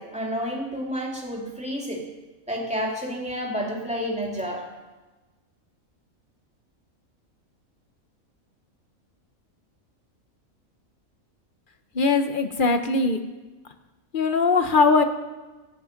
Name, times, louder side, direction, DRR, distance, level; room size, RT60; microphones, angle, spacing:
voice 1, 0.0-2.0 2.5-4.7, equal, 5° right, -1 dB, 2.8 m, -30 dB
voice 2, 11.9-13.2 14.1-15.0, left 4 dB, 40° left, 8 dB, 1.2 m, -20 dB
26.0 x 8.7 x 5.2 m, 1.2 s
omnidirectional pair, 1.4 m